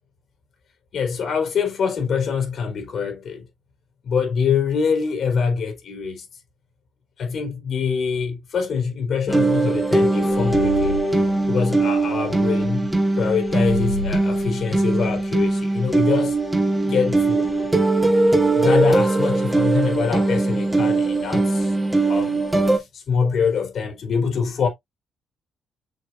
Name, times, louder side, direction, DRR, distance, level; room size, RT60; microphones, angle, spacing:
voice 1, 0.9-3.5 4.0-6.2 7.2-12.9 13.2-16.4 16.9-17.7 18.5-21.7 22.1-24.7, left 6 dB, 60° left, 3.4 m, -24 dB
sound 1, 9.3-22.8, right 2 dB, 10° right, 3.1 m, -20 dB
sound 2, 10.3-12.4 13.4-15.5, left 3 dB, 75° left, 2.3 m, -33 dB
6.6 x 6.5 x 2.5 m
cardioid pair, 90°, 0 cm